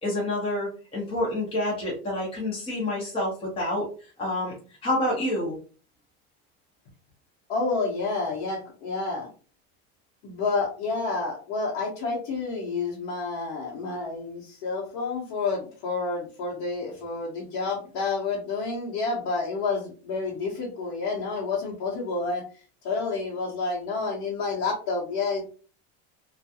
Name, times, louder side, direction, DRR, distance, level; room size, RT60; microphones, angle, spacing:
voice 1, 0.0-4.5 4.8-5.6, left 1 dB, 15° left, -5 dB, 0.9 m, -28 dB
voice 2, 7.5-9.3 10.2-22.4 22.8-25.4, left 4 dB, 60° left, -4 dB, 1.0 m, -29 dB
2.3 x 2.2 x 2.8 m, 0.38 s
supercardioid pair, 155°, 32 cm